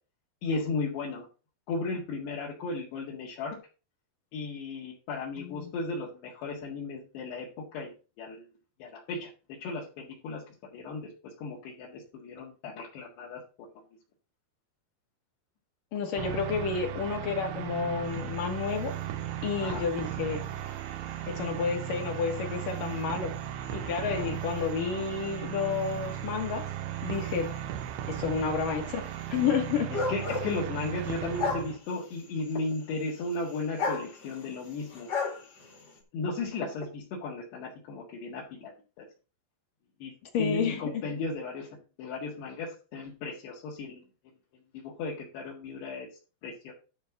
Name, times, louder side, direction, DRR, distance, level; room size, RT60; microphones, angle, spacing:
voice 1, 0.4-1.3 1.7-3.6 4.3-7.9 8.2-8.4 8.8-9.3 9.6-10.4 10.7-13.4 19.6-19.9 29.9-35.1 36.1-39.1 40.0-40.1 40.4-41.7 42.0-44.1 44.7-46.1 46.4-46.7, left 3 dB, 75° left, -5 dB, 4.1 m, -35 dB
voice 2, 5.4-5.7 15.9-18.9 19.4-20.4 21.3-23.3 23.7-26.6 27.0-27.5 28.1-29.0 29.3-29.9 40.3-41.0, left 6 dB, 60° left, 3 dB, 2.8 m, -30 dB
sound 1, 16.2-31.8, right 11 dB, 85° right, 3.0 m, -36 dB
sound 2, 18.0-36.0, left 4 dB, 40° left, 1.6 m, -40 dB
11.5 x 4.2 x 5.8 m, 0.33 s
omnidirectional pair, 4.9 m